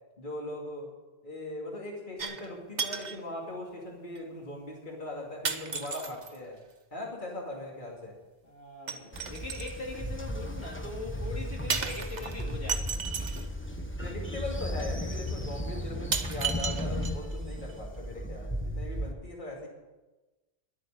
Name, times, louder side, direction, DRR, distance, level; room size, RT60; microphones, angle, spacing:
voice 1, 0.2-0.9 1.2-6.6 6.9-8.1 8.9-9.1 14.0-19.7, left 1 dB, 50° left, -1 dB, 2.6 m, -40 dB
sound 1, 2.2-2.5 2.8-3.2 4.2-4.3 5.4-6.4 8.9-9.8 11.7-13.5 14.6-14.7 15.3-15.4 16.1-17.4 17.7-17.8, right 5 dB, 45° right, 1.0 m, -34 dB
voice 2, 8.4-13.0, left 3 dB, 75° left, -2 dB, 2.8 m, -41 dB
Train, 9.1-19.1, equal, 10° left, 1.0 m, -35 dB
11.5 x 8.8 x 9.0 m, 1.1 s
omnidirectional pair, 1.1 m